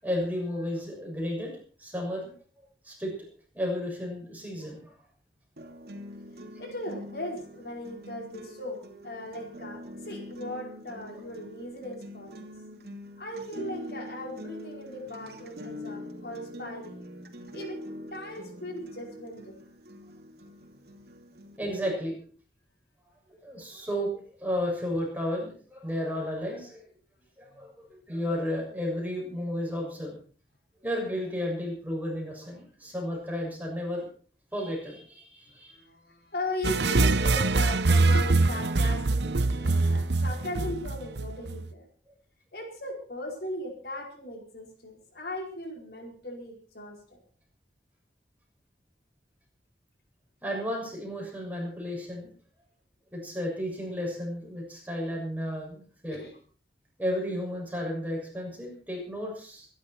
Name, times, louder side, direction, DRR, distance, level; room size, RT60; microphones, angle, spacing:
voice 1, 0.0-1.5 1.8-2.4 2.8-3.1 3.5-4.9 21.6-22.2 23.3-26.8 27.4-30.2 30.8-34.1 34.5-35.8 50.4-52.3 53.1-56.2 57.0-59.7, equal, 10° right, -1 dB, 6.8 m, -33 dB
sound 1, 5.6-21.6, equal, 65° right, 2.7 m, -44 dB
voice 2, 6.6-12.5 13.2-17.0 17.5-17.8 18.1-19.6 20.7-20.8 27.5-27.7 35.5-41.8 42.5-47.2 56.1-56.3, left 1 dB, 65° left, 1 dB, 4.7 m, -38 dB
sound 2, 36.6-41.6, right 3 dB, 80° right, 0.8 m, -24 dB
25.0 x 11.0 x 4.5 m, 0.43 s
head